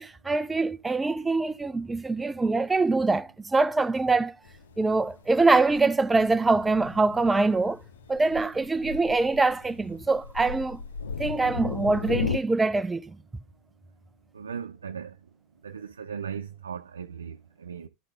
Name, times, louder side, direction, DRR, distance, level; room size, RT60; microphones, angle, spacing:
voice 1, 0.0-4.4 4.8-7.8 8.1-10.8 11.2-13.2, right 3 dB, 15° right, 0.5 m, -24 dB
Thunder, 4.4-12.4, left 6 dB, 80° left, 0.6 m, -36 dB
voice 2, 14.3-15.2 15.6-17.9, right 7 dB, 85° right, 0.8 m, -37 dB
12.0 x 4.1 x 3.7 m
figure-of-eight pair, 85°, 0 cm